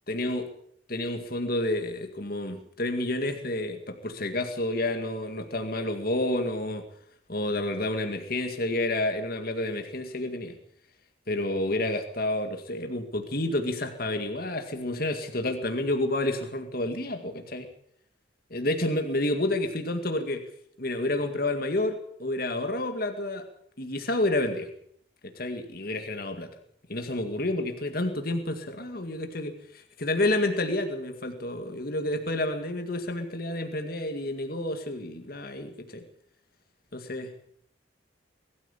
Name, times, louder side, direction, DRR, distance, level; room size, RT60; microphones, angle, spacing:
voice 1, 0.1-0.5 0.9-6.8 7.3-10.6 11.3-17.7 18.5-20.4 20.8-23.4 23.8-24.7 25.2-26.5 26.9-36.0 36.9-37.3, left 1 dB, 50° left, 6 dB, 2.1 m, -29 dB
22.5 x 14.0 x 8.4 m, 0.68 s
head